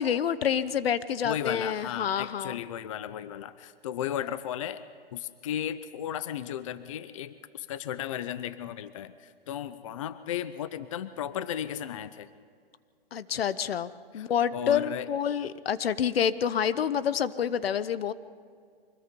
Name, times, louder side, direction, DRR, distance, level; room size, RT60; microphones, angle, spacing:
voice 1, 0.0-2.6 13.1-18.1, left 8 dB, 80° left, 15 dB, 0.9 m, -28 dB
voice 2, 1.2-4.8 5.1-12.3 14.1-15.1, left 10 dB, 35° left, 14 dB, 0.5 m, -35 dB
25.5 x 19.5 x 5.3 m, 2.2 s
hypercardioid pair, 165°, 30 cm